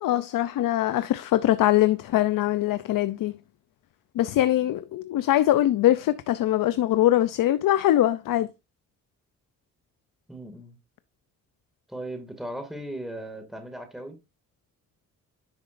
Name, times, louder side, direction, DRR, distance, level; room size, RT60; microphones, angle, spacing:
voice 1, 0.0-3.3 4.2-8.5, left 13 dB, 70° left, 0.6 m, -22 dB
voice 2, 10.3-10.8 11.9-14.2, right 1 dB, ahead, 2.3 m, -37 dB
10.5 x 6.1 x 2.6 m
supercardioid pair, 65°, 34 cm